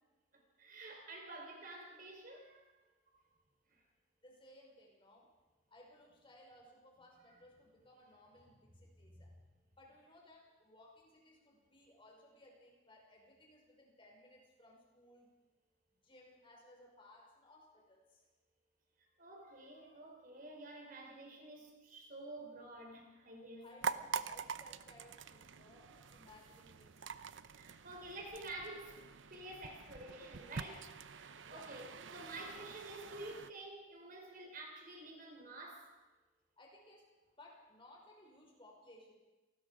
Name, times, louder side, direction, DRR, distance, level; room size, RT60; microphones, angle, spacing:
voice 1, 0.3-2.8 9.0-9.3 19.2-23.7 27.5-29.0 29.3-35.9, right 2 dB, 45° right, 2 dB, 3.9 m, -50 dB
voice 2, 4.2-5.3 5.7-9.3 9.7-15.3 15.9-18.3 23.6-27.1 31.4-31.8 36.6-37.1 37.4-39.1, left 1 dB, 25° left, 0 dB, 5.5 m, -61 dB
sound 1, 23.8-33.5, right 6 dB, 75° right, 0.8 m, -45 dB
28.0 x 20.0 x 5.1 m, 1.2 s
head